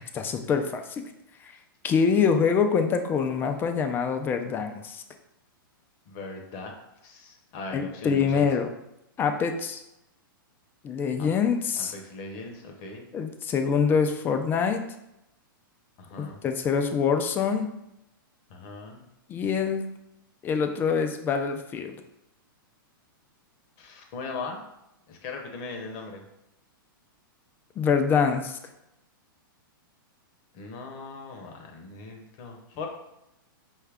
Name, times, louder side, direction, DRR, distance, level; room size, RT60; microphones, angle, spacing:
voice 1, 0.1-1.0 1.4-1.5 1.8-5.0 7.7-8.7 9.2-9.8 10.8-11.9 13.1-14.8 16.2-17.7 19.3-19.9 20.4-22.0 27.8-28.6, left 6 dB, 15° left, 6 dB, 0.3 m, -25 dB
voice 2, 6.1-6.7 7.0-8.5 11.2-11.3 11.7-13.1 16.0-16.4 18.5-19.0 23.8-24.6 25.1-26.3 30.5-32.9, left 3 dB, 40° left, 2 dB, 0.7 m, -39 dB
5.4 x 2.3 x 3.4 m, 0.87 s
hypercardioid pair, 135°, 12 cm